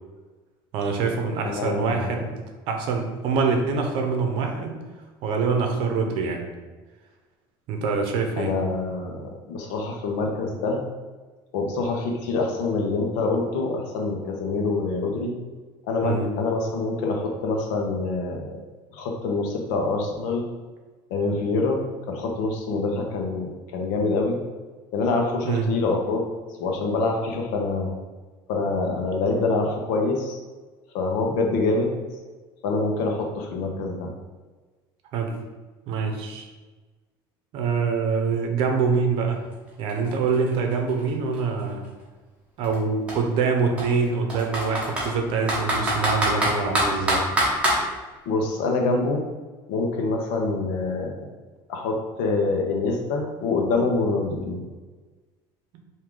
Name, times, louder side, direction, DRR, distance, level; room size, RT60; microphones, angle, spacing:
voice 1, 0.7-2.3 2.7-4.7 5.2-6.5 7.7-8.5 16.0-16.3 25.4-25.7 35.1-35.3 35.9-36.5 37.5-39.4 39.8-41.8 42.6-47.2, right 5 dB, 60° right, 3 dB, 0.7 m, -25 dB
voice 2, 1.4-2.2 8.4-10.8 11.5-15.3 15.9-18.6 18.9-20.4 21.1-24.4 24.9-26.2 26.6-27.9 28.5-30.4 30.9-32.0 32.6-34.1 48.3-49.2 49.7-51.3 51.7-54.6, left 3 dB, 90° left, 1 dB, 0.9 m, -25 dB
Computer keyboard, 39.5-39.6 39.9-41.9 42.6-42.8 43.1-43.2 43.8-45.1 45.5-47.8, right 1 dB, 10° right, 1.1 m, -24 dB
4.7 x 2.7 x 3.7 m, 1.3 s
cardioid pair, 155°, 10 cm